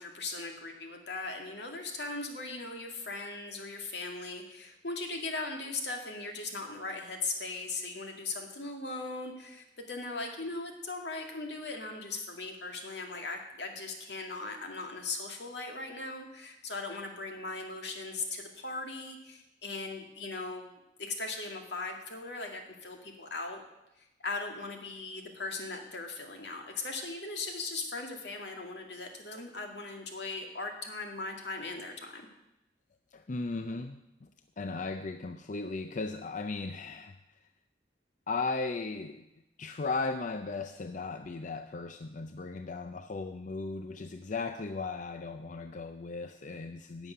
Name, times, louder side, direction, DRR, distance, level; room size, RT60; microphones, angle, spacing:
voice 1, 0.0-20.7 21.0-23.6 24.2-32.2, left 3 dB, 75° left, 3 dB, 2.1 m, -39 dB
voice 2, 33.1-34.3 34.6-37.2 38.3-39.3 39.6-47.1, left 3 dB, 45° left, 8 dB, 0.5 m, -36 dB
11.5 x 7.0 x 9.3 m, 0.91 s
head